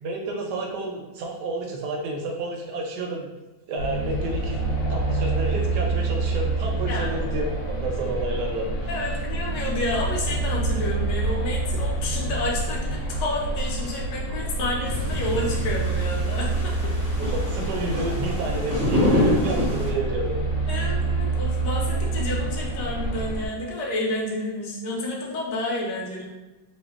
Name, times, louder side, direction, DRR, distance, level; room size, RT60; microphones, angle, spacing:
voice 1, 0.0-3.3 3.7-4.6 4.9-9.2 17.2-20.9, right 2 dB, 75° right, 0 dB, 1.0 m, -30 dB
sound 1, 3.8-23.5, right 2 dB, 90° left, 1.4 m, -27 dB
voice 2, 8.9-16.9 20.7-26.3, left 2 dB, 70° left, -3 dB, 1.3 m, -30 dB
sound 2, 14.8-19.9, left 1 dB, 15° right, 0.6 m, -27 dB
3.3 x 2.2 x 3.5 m, 1.1 s
omnidirectional pair, 2.2 m